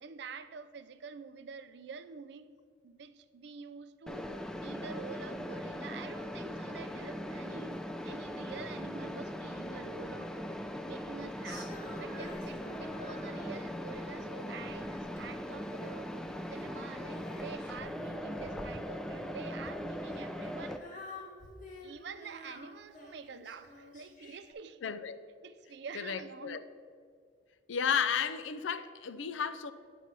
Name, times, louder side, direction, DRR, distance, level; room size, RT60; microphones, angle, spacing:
voice 1, 0.0-2.5 2.8-10.5 10.9-16.1 16.5-20.8 21.8-24.8 25.4-26.6, right 5 dB, 65° right, 0.4 m, -47 dB
Mechanisms, 4.1-20.8, equal, 5° left, 0.3 m, -40 dB
Female singing, 11.4-13.8 14.3-16.1 16.3-19.2 19.9-24.5, left 1 dB, 40° left, 1.3 m, -50 dB
voice 2, 24.8-25.2 25.9-26.6 27.7-29.7, left 7 dB, 85° left, 0.5 m, -33 dB
9.5 x 4.2 x 6.0 m
head